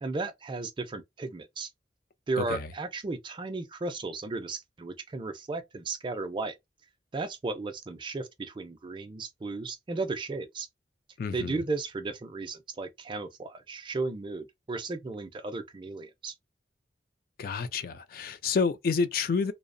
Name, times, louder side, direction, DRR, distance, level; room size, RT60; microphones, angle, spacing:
voice 1, 0.0-1.7 2.3-6.6 7.1-10.7 11.3-16.3, right 3 dB, 25° right, 0.4 m, -35 dB
voice 2, 2.4-2.7 11.2-11.5 17.4-19.5, left 5 dB, 55° left, 0.4 m, -29 dB
2.7 x 2.0 x 2.5 m
head